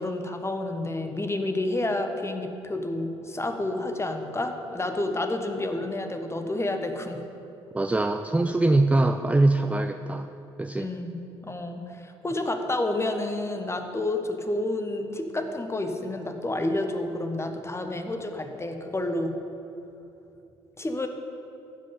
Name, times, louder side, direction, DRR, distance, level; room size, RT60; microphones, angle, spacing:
voice 1, 0.0-7.2 10.8-19.4 20.8-21.1, left 2 dB, 20° left, 5 dB, 1.2 m, -30 dB
voice 2, 7.7-10.3 10.6-10.9, right 2 dB, 10° right, 7 dB, 0.4 m, -23 dB
15.0 x 5.3 x 5.4 m, 2.8 s
figure-of-eight pair, 50°, 15 cm